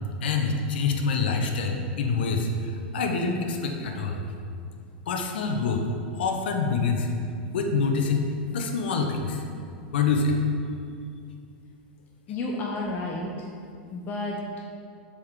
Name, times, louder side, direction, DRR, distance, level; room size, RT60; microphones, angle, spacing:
voice 1, 0.2-4.2 5.1-5.8 6.1-7.1 7.5-8.2 8.5-9.4 9.9-10.4, left 4 dB, 80° left, 3 dB, 0.7 m, -26 dB
voice 2, 12.3-13.3 13.9-14.6, left 2 dB, 35° left, -1 dB, 0.7 m, -31 dB
6.9 x 4.8 x 3.6 m, 2.4 s
supercardioid pair, 130°, 5 cm